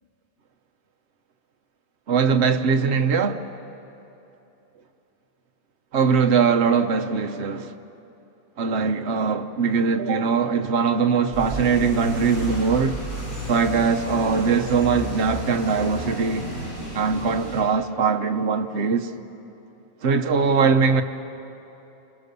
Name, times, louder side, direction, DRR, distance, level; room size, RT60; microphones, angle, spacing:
voice 1, 2.1-3.4 5.9-7.7 8.6-13.0 13.5-16.5 16.9-19.1 20.0-21.0, right 5 dB, 50° right, 1.2 m, -21 dB
sound 1, 11.3-17.6, right 1 dB, 45° left, 8.0 m, -32 dB
28.5 x 27.0 x 6.8 m
omnidirectional pair, 1.5 m